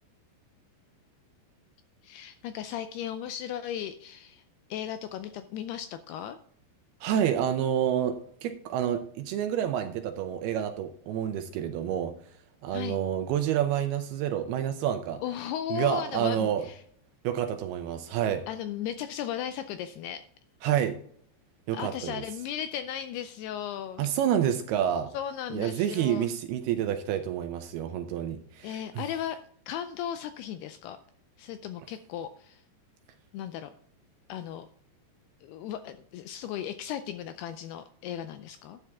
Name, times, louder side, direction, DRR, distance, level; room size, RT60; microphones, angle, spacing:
voice 1, 2.0-4.4 4.7-6.4 12.7-13.0 15.2-16.8 18.5-20.2 21.7-24.1 25.1-26.3 28.6-29.4 29.7-31.0 31.4-32.6 33.3-33.7 34.3-34.7 35.4-38.8, left 10 dB, 85° left, 10 dB, 2.3 m, -36 dB
voice 2, 7.0-12.1 12.6-15.2 15.7-16.7 17.2-18.4 20.6-21.0 21.7-22.2 24.0-25.1 25.5-29.0, right 10 dB, 80° right, 7 dB, 2.4 m, -28 dB
12.5 x 8.5 x 3.5 m, 0.63 s
omnidirectional pair, 5.1 m